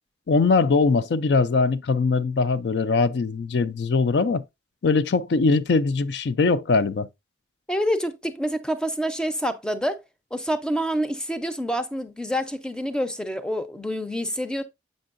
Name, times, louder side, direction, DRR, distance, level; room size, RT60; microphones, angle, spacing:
voice 1, 0.3-4.4 4.8-7.1, left 4 dB, 65° left, 0.4 m, -21 dB
voice 2, 7.7-10.0 10.3-14.6, equal, 5° left, 0.5 m, -27 dB
7.5 x 5.3 x 2.5 m
head